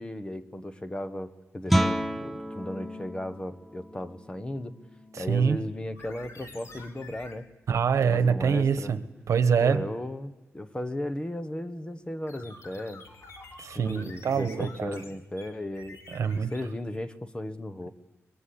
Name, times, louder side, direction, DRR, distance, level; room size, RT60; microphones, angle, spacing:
voice 1, 0.0-4.8 5.2-7.5 8.1-8.9 9.6-13.1 13.7-17.9, left 1 dB, 20° left, 10 dB, 1.2 m, -36 dB
Guitar, 1.7-7.2, equal, ahead, 0.8 m, -32 dB
voice 2, 5.1-5.6 7.7-9.0 9.3-9.8 13.6-14.9 16.1-16.5, right 6 dB, 80° right, 10 dB, 1.3 m, -25 dB
sound 1, 5.9-7.4 12.3-17.0, left 2 dB, 65° left, 3.7 m, -48 dB
23.0 x 22.5 x 8.6 m, 1.1 s
wide cardioid pair, 135°, 5 cm